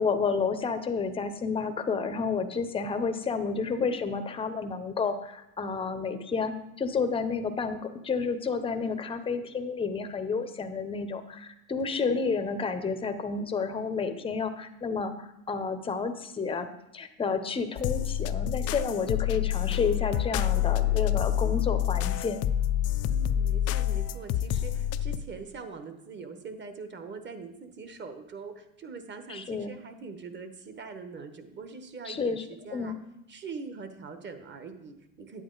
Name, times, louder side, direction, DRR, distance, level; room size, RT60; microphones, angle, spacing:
voice 1, 0.0-7.8 8.0-16.7 16.9-22.4 29.3-29.7 32.1-32.4 32.7-33.0, left 5 dB, 10° left, 8 dB, 0.7 m, -30 dB
voice 2, 8.8-9.2 11.8-12.1 19.0-19.4 23.0-33.0 33.3-35.4, right 4 dB, 25° right, 8 dB, 1.2 m, -43 dB
sound 1, 17.8-25.2, left 11 dB, 35° left, 0.5 m, -27 dB
9.1 x 8.7 x 4.0 m, 0.85 s
hypercardioid pair, 105°, 44 cm